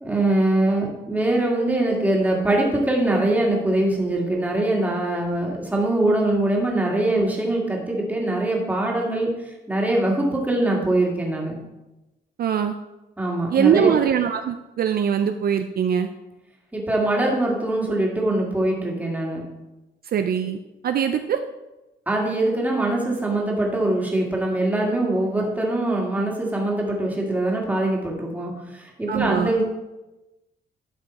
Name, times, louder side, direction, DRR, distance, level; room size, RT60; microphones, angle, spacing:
voice 1, 0.0-11.6 13.2-13.9 16.7-19.4 22.1-29.6, right 1 dB, 10° right, -2 dB, 1.9 m, -23 dB
voice 2, 12.4-12.7 13.5-16.1 20.1-20.6 20.8-21.4 29.1-29.5, right 8 dB, 55° right, 8 dB, 0.5 m, -22 dB
12.0 x 5.5 x 4.2 m, 1.0 s
wide cardioid pair, 155°, 19 cm